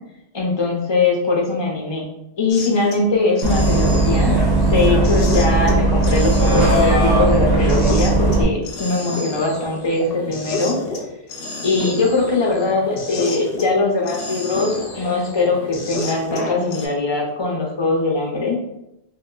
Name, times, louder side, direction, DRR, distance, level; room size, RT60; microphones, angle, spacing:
voice 1, 0.3-2.1 2.4-4.3 4.6-10.8 11.6-18.6, left 3 dB, 30° left, -1 dB, 0.5 m, -21 dB
sound 1, 2.5-3.0 3.3-13.7 14.0-16.9, left 2 dB, 60° left, 0.8 m, -30 dB
Bus, 3.4-8.4, right 2 dB, 40° right, 0.8 m, -17 dB
2.8 x 2.1 x 3.7 m, 0.86 s
omnidirectional pair, 1.2 m